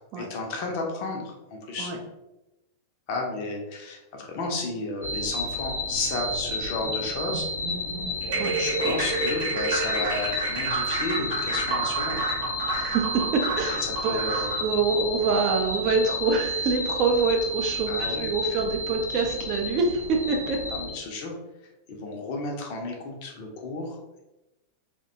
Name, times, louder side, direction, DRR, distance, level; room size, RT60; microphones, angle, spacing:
voice 1, 0.2-1.9 3.1-7.5 8.6-12.2 14.0-14.5 17.9-18.3 20.7-21.3 21.9-24.2, left 3 dB, 45° left, 1 dB, 0.6 m, -32 dB
sound 1, 5.0-21.0, left 1 dB, 80° left, 0.7 m, -31 dB
sound 2, 8.2-14.7, right 2 dB, 60° right, 0.8 m, -29 dB
voice 2, 12.8-20.7, right 4 dB, 40° right, 2 dB, 0.4 m, -26 dB
2.6 x 2.1 x 2.6 m, 0.96 s
figure-of-eight pair, 90°, 0 cm